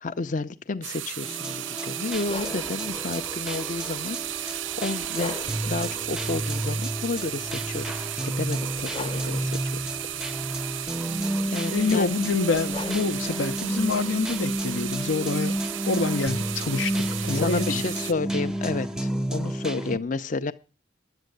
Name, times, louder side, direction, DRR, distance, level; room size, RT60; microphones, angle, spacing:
voice 1, 0.0-5.4 5.6-10.0 11.5-12.1 17.3-20.5, left 3 dB, 40° left, 0.5 m, -31 dB
sound 1, 0.8-18.1, right 13 dB, 85° right, 0.5 m, -34 dB
sound 2, 1.2-20.0, right 1 dB, 5° right, 0.6 m, -31 dB
sound 3, 2.1-17.5, left 3 dB, 25° left, 0.9 m, -44 dB
voice 2, 11.7-15.6 15.9-17.8, left 4 dB, 80° left, 0.8 m, -26 dB
10.5 x 8.3 x 7.8 m
head